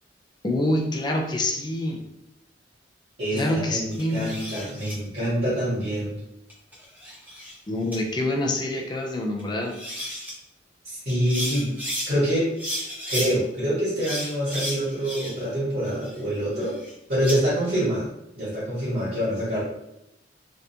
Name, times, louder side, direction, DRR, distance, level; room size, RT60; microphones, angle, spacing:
voice 1, 0.4-2.0 3.3-4.4 7.7-9.8, left 1 dB, 25° left, 0 dB, 0.5 m, -26 dB
voice 2, 3.2-6.1 10.8-11.7 12.1-12.5 13.1-16.7 17.1-18.1 18.4-19.6, equal, 55° right, -10 dB, 1.4 m, -26 dB
sound 1, 3.9-4.9 6.5-7.6 7.9-8.0 9.4-9.5 9.7-10.3 11.1-12.1 12.6-13.3 14.0-15.5 15.9-17.4, equal, 10° right, 0.9 m, -33 dB
3.4 x 2.5 x 2.8 m, 0.83 s
head